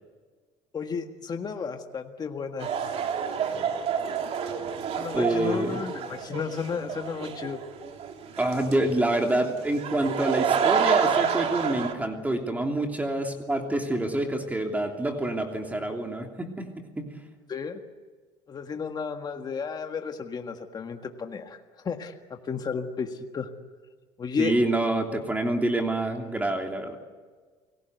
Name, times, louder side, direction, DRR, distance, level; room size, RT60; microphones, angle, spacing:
voice 1, 0.7-2.7 4.9-7.6 17.5-17.8 18.5-23.5 24.2-24.6, left 5 dB, 35° left, 5 dB, 1.7 m, -33 dB
sound 1, 2.6-11.9, right 7 dB, 55° right, 3.1 m, -29 dB
voice 2, 5.1-5.8 8.4-16.7 17.0-17.1 24.4-27.0, right 1 dB, 10° right, 3 dB, 3.1 m, -27 dB
29.5 x 19.0 x 8.1 m, 1.5 s
cardioid pair, 110°, 13 cm